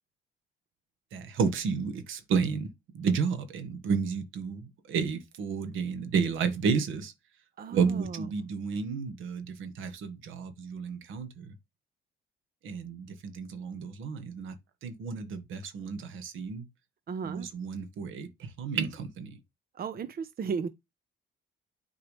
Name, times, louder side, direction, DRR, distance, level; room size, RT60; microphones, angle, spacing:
voice 1, 1.1-7.1 7.7-11.5 12.6-14.5 14.8-16.6 17.2-19.4, right 5 dB, 85° right, 1.5 m, -31 dB
voice 2, 7.6-8.3 17.1-17.5 19.7-20.7, right 6 dB, 50° right, 0.9 m, -35 dB
8.6 x 4.7 x 3.3 m
cardioid pair, 90°, 20 cm